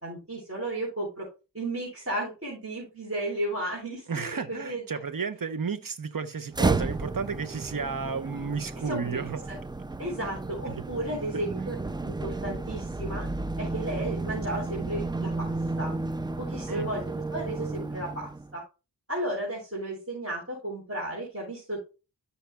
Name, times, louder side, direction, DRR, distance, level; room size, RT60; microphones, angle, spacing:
voice 1, 0.0-1.3 1.5-4.8 8.8-9.2 9.5-9.6 10.0-11.7 12.0-13.3 13.6-15.9 16.4-18.6 19.1-21.8, right 1 dB, 30° right, 3.8 m, -34 dB
voice 2, 4.1-9.4 10.7-10.8 11.3-11.4 16.7-16.9, right 5 dB, 50° right, 1.0 m, -32 dB
sound 1, 6.5-18.5, right 3 dB, 10° right, 0.3 m, -32 dB
13.0 x 5.7 x 2.2 m
wide cardioid pair, 60°, 44 cm